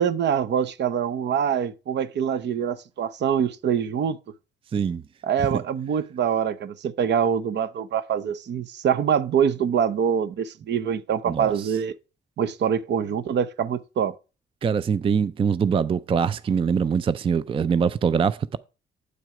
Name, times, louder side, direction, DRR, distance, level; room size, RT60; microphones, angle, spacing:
voice 1, 0.0-4.2 5.2-12.0 12.4-14.1, right 8 dB, 60° right, 0.7 m, -24 dB
voice 2, 4.7-5.0 5.5-5.6 11.3-11.7 14.6-18.6, right 6 dB, 25° right, 0.4 m, -23 dB
8.0 x 6.2 x 4.9 m
cardioid pair, 90°, 20 cm